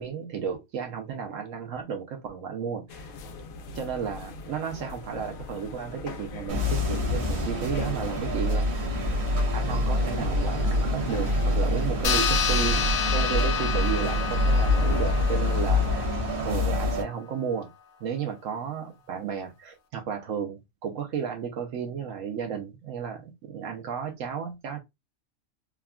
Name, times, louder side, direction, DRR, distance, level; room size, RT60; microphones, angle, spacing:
voice 1, 0.0-3.1 3.7-9.1 9.5-16.1 16.4-17.7 18.0-24.8, right 7 dB, 75° right, 0.9 m, -33 dB
sound 1, 2.9-16.0, left 3 dB, 85° left, 1.0 m, -42 dB
sound 2, 6.5-17.0, left 1 dB, 55° right, 1.3 m, -26 dB
sound 3, 12.0-16.9, left 7 dB, 55° left, 0.6 m, -29 dB
3.5 x 2.2 x 2.2 m
omnidirectional pair, 1.4 m